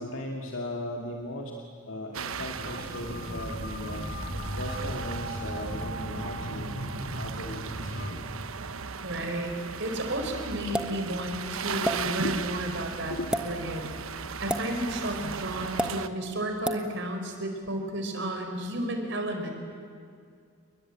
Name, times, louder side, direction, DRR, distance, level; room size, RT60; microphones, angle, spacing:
voice 1, 0.0-1.5 1.9-4.0 4.6-8.1 12.2-12.4 13.1-13.3, left 1 dB, 65° left, 0 dB, 2.5 m, -37 dB
sound 1, 2.1-16.1, right 5 dB, 70° right, 1.1 m, -37 dB
sound 2, 2.6-8.1, equal, 50° left, 4.4 m, -36 dB
voice 2, 9.0-9.5 9.8-13.1 13.4-19.5, right 1 dB, 55° right, 4 dB, 4.7 m, -32 dB
sound 3, 10.7-11.0 11.8-12.0 13.2-13.4 14.5-14.7 15.8-15.9 16.6-16.8, right 1 dB, 5° right, 1.1 m, -27 dB
29.5 x 22.0 x 8.9 m, 2.3 s
head